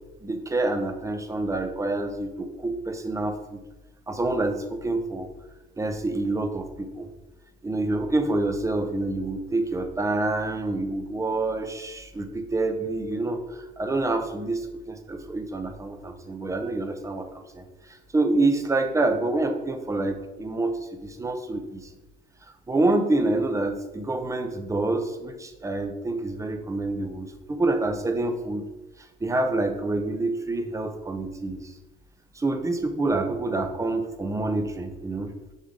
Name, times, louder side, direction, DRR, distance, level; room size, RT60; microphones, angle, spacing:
voice 1, 0.2-3.6 4.1-5.3 5.8-7.1 7.6-21.9 22.7-28.7 29.2-31.7 32.3-35.3, right 2 dB, 20° right, 7 dB, 0.7 m, -27 dB
6.4 x 3.4 x 5.1 m, 1.1 s
cardioid pair, 110°, 17 cm